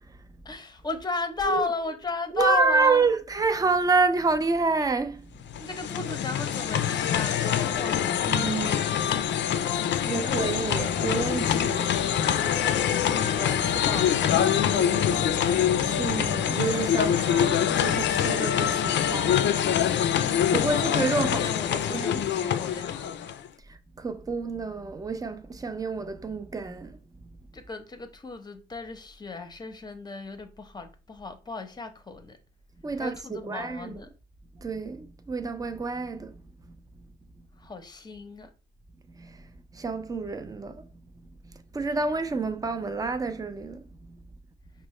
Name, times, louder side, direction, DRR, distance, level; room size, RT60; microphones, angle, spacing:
voice 1, 0.4-3.1 5.6-8.2 8.6-9.4 9.8-10.7 12.3-15.4 20.4-23.3 27.5-32.4 33.0-34.1 37.6-38.5, left 3 dB, 20° left, 0.7 m, -35 dB
voice 2, 2.3-5.2 8.2-9.1 10.0-11.9 15.8-19.5 20.3-21.5 21.9-22.2 24.0-27.0 32.8-34.0 34.6-36.3 39.2-39.3 39.8-40.8 41.7-43.8, right 4 dB, 20° right, 0.5 m, -28 dB
sound 1, 5.4-23.5, left 9 dB, 65° left, 0.4 m, -25 dB
sound 2, 10.1-17.1, right 3 dB, 45° right, 0.9 m, -41 dB
5.3 x 2.1 x 3.1 m
cardioid pair, 90°, 20 cm